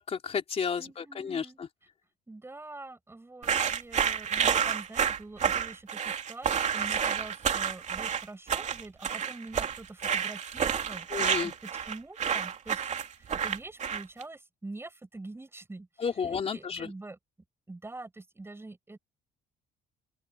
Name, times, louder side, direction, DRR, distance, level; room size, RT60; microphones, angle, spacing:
voice 1, 0.0-1.7 11.1-11.5 16.0-16.9, left 6 dB, 40° left, 3.2 m, -32 dB
voice 2, 0.8-1.6 2.3-11.1 11.4-12.9 13.2-17.2 17.7-19.0, right 2 dB, 15° right, 7.3 m, -45 dB
sound 1, 3.4-14.2, right 7 dB, 45° right, 2.9 m, -29 dB
open air
cardioid pair, 110°, 17 cm